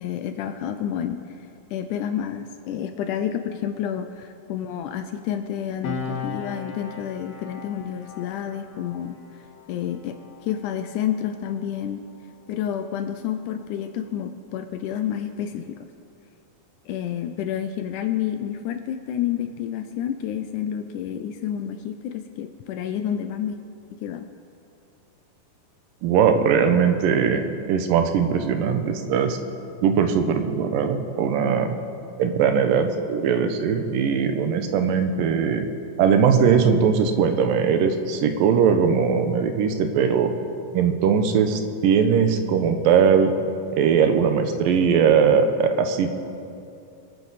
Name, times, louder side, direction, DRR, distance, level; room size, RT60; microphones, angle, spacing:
voice 1, 0.0-1.4 1.7-9.2 9.7-12.0 12.5-15.8 16.9-23.6 24.0-24.3, left 9 dB, 85° left, 8 dB, 1.8 m, -29 dB
Piano, 5.8-12.9 13.1-13.4, left 4 dB, 60° left, 2.1 m, -38 dB
voice 2, 26.0-29.4 29.8-31.8 32.2-35.7 36.0-40.3 40.7-43.3 43.7-46.1, right 6 dB, 75° right, 7 dB, 2.5 m, -20 dB
25.0 x 9.3 x 4.1 m, 2.6 s
omnidirectional pair, 4.2 m